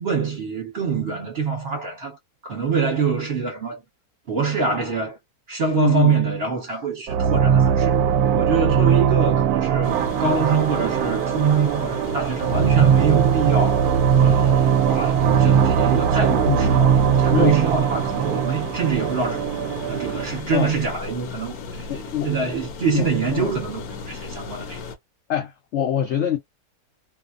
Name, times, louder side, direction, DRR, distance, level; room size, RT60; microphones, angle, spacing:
voice 1, 0.0-2.2 2.4-3.8 4.3-5.2 5.5-8.0 8.3-19.4 19.9-21.9 22.2-24.8, right 5 dB, 45° right, 1.1 m, -24 dB
voice 2, 5.8-6.2 16.4-16.9 17.3-17.5 20.5-20.7 21.9-22.3 22.9-23.5 25.3-26.4, left 9 dB, 85° left, 0.6 m, -24 dB
sound 1, 7.1-20.4, right 8 dB, 75° right, 1.0 m, -20 dB
sound 2, 9.8-25.0, left 4 dB, 70° left, 1.0 m, -36 dB
2.7 x 2.1 x 2.4 m
omnidirectional pair, 1.7 m